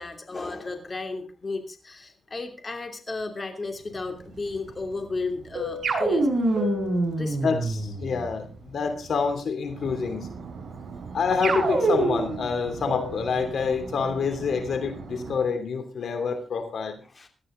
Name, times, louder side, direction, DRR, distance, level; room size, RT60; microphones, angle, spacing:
voice 1, 0.0-6.3 7.2-7.5 17.1-17.3, left 3 dB, 35° left, 5 dB, 2.8 m, -34 dB
Fixed-wing aircraft airplane, 3.9-9.3 9.7-15.5, equal, 70° right, 5.1 m, -38 dB
sound 1, 5.8-8.3 11.4-12.4, right 2 dB, 55° right, 7.2 m, -25 dB
voice 2, 7.4-10.3 11.1-16.9, left 5 dB, 70° left, 7 dB, 2.9 m, -27 dB
18.0 x 13.0 x 3.9 m, 0.34 s
cardioid pair, 95°, 0 cm